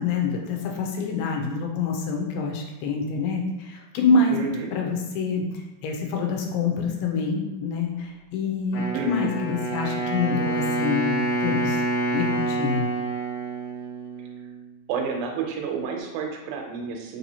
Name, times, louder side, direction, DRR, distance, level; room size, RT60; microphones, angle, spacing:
voice 1, 0.0-4.4 4.7-5.4 5.8-11.8 12.1-12.9, left 4 dB, 80° left, 1 dB, 2.3 m, -26 dB
voice 2, 4.3-4.7 8.9-9.3 14.9-17.2, right 5 dB, 80° right, 2 dB, 2.3 m, -30 dB
Wind instrument woodwind instrument, 8.7-14.7, right 2 dB, 55° left, 2.2 m, -27 dB
5.3 x 2.8 x 2.7 m, 1.0 s
omnidirectional pair, 4.2 m